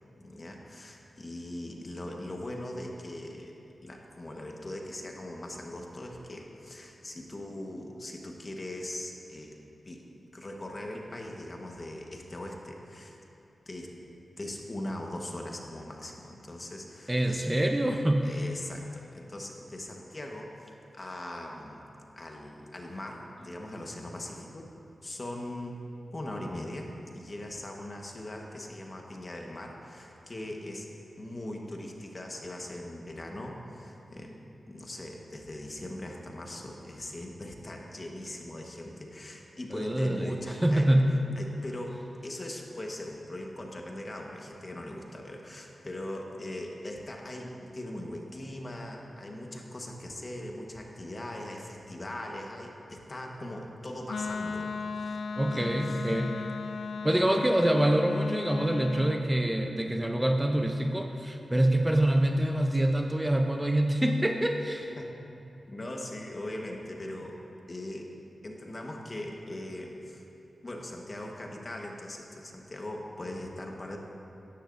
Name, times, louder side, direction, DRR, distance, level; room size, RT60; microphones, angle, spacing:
voice 1, 0.2-9.6 9.8-10.0 10.3-13.2 13.7-13.9 14.4-17.5 18.2-21.8 22.2-24.7 25.0-25.8 26.1-30.9 31.1-34.4 34.7-40.9 41.4-56.0 65.0-67.4 67.7-68.2 68.4-70.2 70.6-74.0, left 1 dB, 35° left, 1 dB, 1.2 m, -40 dB
voice 2, 17.1-18.3 39.7-40.3 40.6-41.1 55.4-56.5 57.0-64.9, right 1 dB, 15° right, 4 dB, 0.6 m, -25 dB
Wind instrument woodwind instrument, 54.1-59.2, left 4 dB, 80° left, 0.3 m, -36 dB
13.0 x 10.0 x 2.6 m, 2.8 s
cardioid pair, 60°, 0 cm